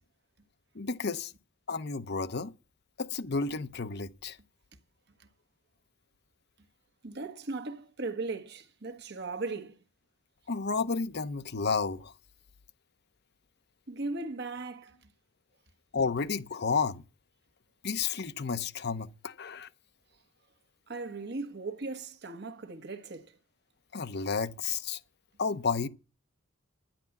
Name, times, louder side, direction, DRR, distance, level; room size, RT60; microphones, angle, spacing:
voice 1, 0.7-1.3 1.7-2.5 3.0-4.4 10.5-12.1 15.9-17.0 17.8-19.7 23.9-25.0 25.4-25.9, left 5 dB, 55° left, 0.8 m, -31 dB
voice 2, 7.0-9.7 13.9-14.9 20.9-23.3, right 3 dB, 55° right, 1.3 m, -37 dB
10.5 x 10.5 x 7.2 m
head